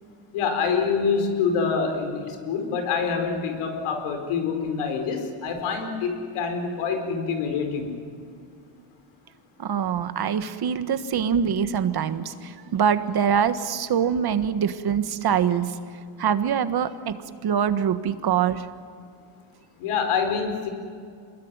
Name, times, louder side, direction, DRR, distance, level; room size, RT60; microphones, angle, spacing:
voice 1, 0.3-7.9 19.8-20.7, left 5 dB, 90° left, 5 dB, 4.8 m, -26 dB
voice 2, 9.6-15.8 16.2-18.7, right 8 dB, 50° right, 11 dB, 1.6 m, -24 dB
27.0 x 21.5 x 9.7 m, 2.2 s
cardioid pair, 115°, 49 cm